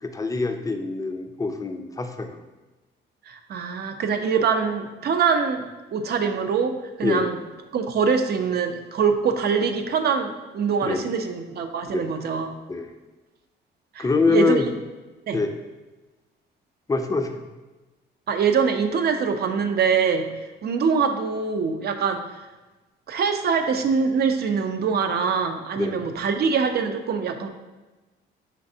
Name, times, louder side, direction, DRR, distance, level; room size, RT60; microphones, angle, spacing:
voice 1, 0.0-2.4 7.0-7.3 10.8-11.1 11.9-12.0 12.7-12.9 14.0-14.7 15.3-15.5 16.9-17.4 25.8-26.1, left 3 dB, 15° left, 5 dB, 0.4 m, -24 dB
voice 2, 3.3-7.4 7.7-12.5 13.9-14.6 15.3-15.4 18.3-20.3 20.6-22.2 23.1-27.5, right 6 dB, 55° right, 7 dB, 0.5 m, -24 dB
5.2 x 3.2 x 2.7 m, 1.2 s
cardioid pair, 90°, 20 cm